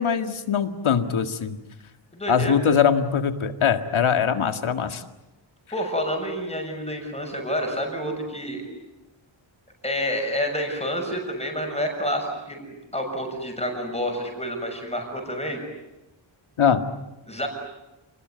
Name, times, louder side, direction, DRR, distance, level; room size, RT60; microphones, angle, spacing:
voice 1, 0.0-1.6 2.3-5.0 16.6-16.8, left 7 dB, 85° left, 7 dB, 2.0 m, -22 dB
voice 2, 2.1-2.6 5.7-8.6 9.8-15.6 17.3-17.5, equal, 15° left, 3 dB, 6.6 m, -28 dB
29.5 x 21.0 x 9.5 m, 1.0 s
wide cardioid pair, 120°, 47 cm